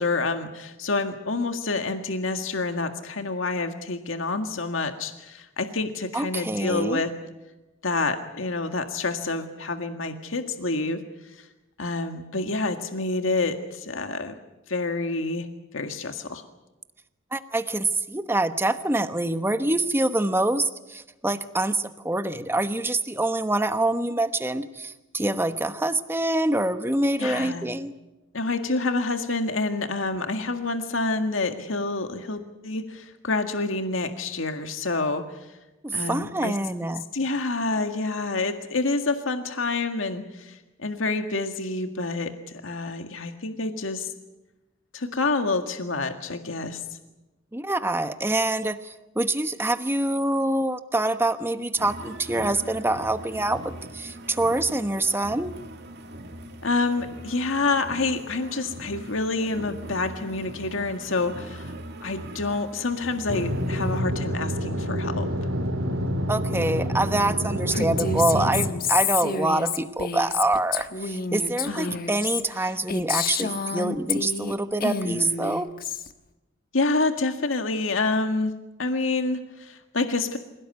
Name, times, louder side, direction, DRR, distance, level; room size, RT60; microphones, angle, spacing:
voice 1, 0.0-7.1 7.8-11.0 11.2-11.5 11.8-14.3 14.7-15.5 15.7-16.4 27.2-27.7 28.3-35.4 35.9-36.5 37.1-42.3 42.6-44.1 44.9-46.8 56.6-61.7 62.0-65.3 71.7-72.0 76.7-78.5 78.8-80.4, left 3 dB, 75° left, 6 dB, 1.9 m, -28 dB
voice 2, 6.1-7.0 17.3-27.9 35.8-37.0 47.5-55.5 66.3-75.7, right 2 dB, 10° right, 10 dB, 1.1 m, -25 dB
sound 1, 51.8-64.0, right 1 dB, 55° right, 2.4 m, -41 dB
sound 2, 63.3-68.7, equal, 85° right, 3.0 m, -27 dB
Female speech woman speaking, 67.7-74.5 74.8-76.1, left 6 dB, 45° left, 1.3 m, -29 dB
26.5 x 17.5 x 9.5 m, 1.0 s
head